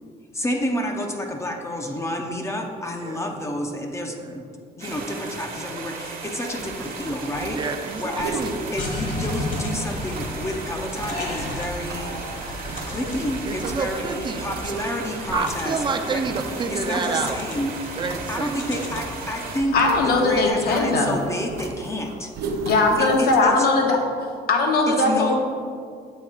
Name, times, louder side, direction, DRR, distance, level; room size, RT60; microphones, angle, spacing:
voice 1, 0.3-4.5 4.8-7.6 8.0-8.4 8.7-12.2 12.9-16.2 16.7-17.7 18.3-19.7 20.0-22.3 23.0-23.7 24.9-25.4, left 1 dB, 15° left, 2 dB, 0.6 m, -29 dB
sound 1, 4.8-19.6, right 4 dB, 55° right, 1.2 m, -36 dB
sound 2, 6.6-23.4, right 3 dB, 75° right, 0.7 m, -37 dB
voice 2, 7.5-8.5 13.4-14.8 15.3-17.4 18.0-18.9, right 4 dB, 30° right, 5 dB, 0.5 m, -28 dB
sound 3, 8.8-20.5, left 2 dB, 50° left, 1.3 m, -35 dB
voice 3, 19.7-21.2 22.6-24.0 24.5-25.4, left 3 dB, 65° left, 2 dB, 1.0 m, -19 dB
7.3 x 3.4 x 4.8 m, 2.2 s
cardioid pair, 110°, 17 cm